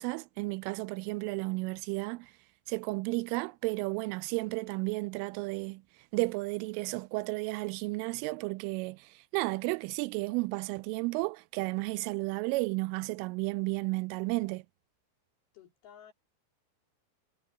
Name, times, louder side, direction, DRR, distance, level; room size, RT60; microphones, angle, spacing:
voice 1, 0.0-2.3 2.7-5.8 6.1-14.6, right 24 dB, 85° right, 3.1 m, -33 dB
voice 2, 15.5-16.1, left 9 dB, 55° left, 3.9 m, -53 dB
omnidirectional pair, 5.7 m